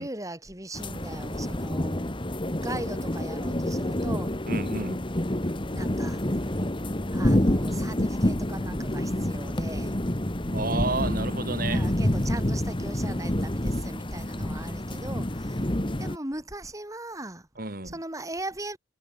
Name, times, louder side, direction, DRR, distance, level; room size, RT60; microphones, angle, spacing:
voice 1, 0.0-2.1 2.6-4.3 5.7-6.4 7.1-10.0 11.6-15.7 16.0-17.5 17.8-18.8, right 1 dB, 15° right, 4.4 m, -39 dB
sound 1, 0.7-16.2, left 1 dB, 25° left, 1.7 m, -28 dB
voice 2, 4.5-5.0 10.5-11.9 17.6-17.9, right 3 dB, 50° right, 4.4 m, -31 dB
head